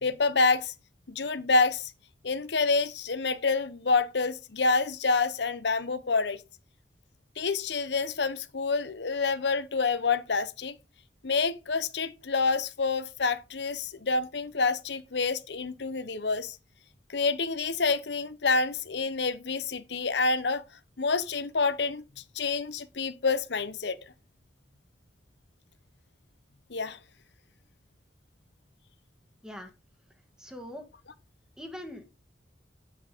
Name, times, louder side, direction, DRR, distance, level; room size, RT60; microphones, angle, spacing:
voice 1, 0.0-0.7 1.1-1.9 2.2-6.4 7.4-10.8 11.2-16.6 17.1-20.6 21.0-22.0 22.3-24.0 26.7-27.0, left 4 dB, 80° left, 0.9 m, -27 dB
voice 2, 30.4-30.8 31.6-32.0, left 1 dB, 5° right, 1.8 m, -41 dB
8.6 x 7.9 x 3.6 m
head